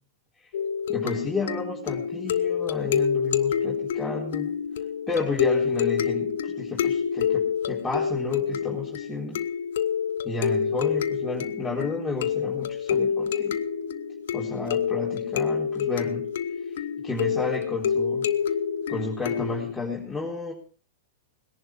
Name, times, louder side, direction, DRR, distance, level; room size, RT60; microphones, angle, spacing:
sound 1, 0.5-19.7, left 7 dB, 70° left, 1.1 m, -27 dB
voice 1, 0.9-4.5 5.1-9.4 10.2-13.6 14.3-16.3 17.0-18.3 18.9-20.5, left 3 dB, 5° left, -5 dB, 3.9 m, -32 dB
19.5 x 11.0 x 4.7 m, 0.40 s
hypercardioid pair, 110°, 0 cm